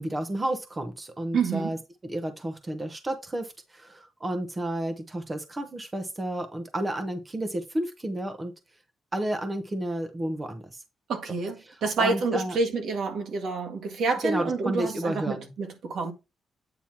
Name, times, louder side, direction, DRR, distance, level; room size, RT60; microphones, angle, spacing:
voice 1, 0.0-1.8 2.0-8.5 9.1-10.8 11.6-12.6 14.2-15.5, right 1 dB, 20° right, 0.8 m, -31 dB
voice 2, 1.3-1.7 11.1-16.1, right 4 dB, 70° right, 1.8 m, -28 dB
8.7 x 3.0 x 5.8 m
wide cardioid pair, 150°, 0 cm